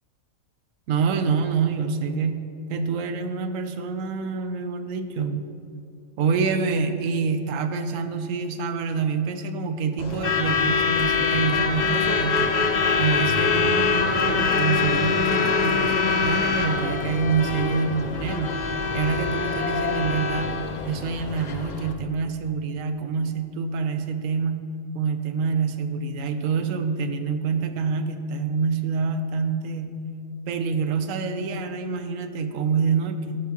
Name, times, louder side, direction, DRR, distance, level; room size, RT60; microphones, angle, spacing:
voice 1, 0.9-2.4 2.7-5.5 6.2-12.5 13.0-18.5 18.9-20.5 20.9-24.6 24.9-30.0 30.5-33.4, right 5 dB, 70° right, 8 dB, 1.0 m, -26 dB
Truck / Alarm, 10.0-21.9, left 5 dB, 75° left, 0.4 m, -24 dB
14.0 x 5.8 x 2.9 m, 2.8 s
omnidirectional pair, 1.5 m